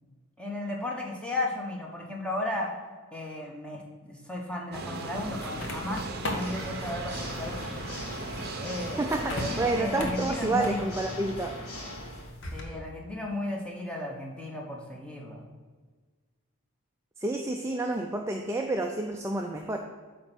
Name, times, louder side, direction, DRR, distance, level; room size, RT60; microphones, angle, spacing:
voice 1, 0.4-2.7 3.1-7.7 8.6-10.9 12.5-15.4, left 2 dB, 5° left, -2 dB, 0.9 m, -35 dB
sound 1, 4.7-9.8, right 3 dB, 45° right, 0.7 m, -38 dB
sound 2, 5.1-12.6, left 1 dB, 55° left, 1.2 m, -39 dB
Water / Mechanisms, 6.3-12.3, left 1 dB, 85° left, 1.6 m, -41 dB
voice 2, 9.0-11.5 17.2-19.8, right 2 dB, 10° right, 2 dB, 0.3 m, -29 dB
8.6 x 3.3 x 6.0 m, 1.5 s
head